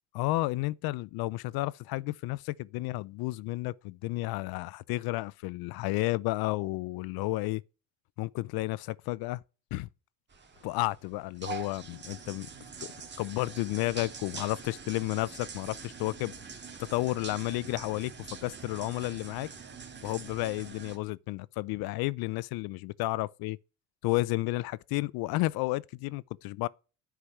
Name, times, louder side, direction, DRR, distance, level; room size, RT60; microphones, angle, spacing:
voice 1, 0.1-7.6 8.2-9.4 9.7-9.9 10.6-12.5 12.8-16.3 16.8-18.1 18.4-19.5 20.0-23.6 24.0-26.7, left 19 dB, 70° left, 0.6 m, -32 dB
sound 1, 10.3-21.0, right 5 dB, 30° right, 2.2 m, -44 dB
10.0 x 4.7 x 5.8 m
cardioid pair, 120°, 38 cm